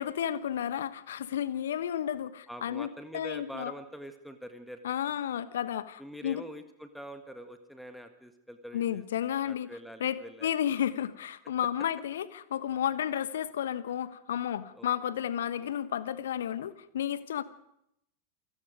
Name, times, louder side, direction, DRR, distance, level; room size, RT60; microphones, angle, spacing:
voice 1, 0.0-2.9 3.1-3.7 4.8-6.4 8.7-9.7 10.0-17.4, left 10 dB, 60° left, 15 dB, 1.1 m, -32 dB
voice 2, 2.5-4.8 6.0-9.0 9.4-10.5 14.8-14.9, equal, ahead, 8 dB, 1.6 m, -44 dB
28.0 x 18.0 x 5.1 m, 0.77 s
figure-of-eight pair, 90°, 0 cm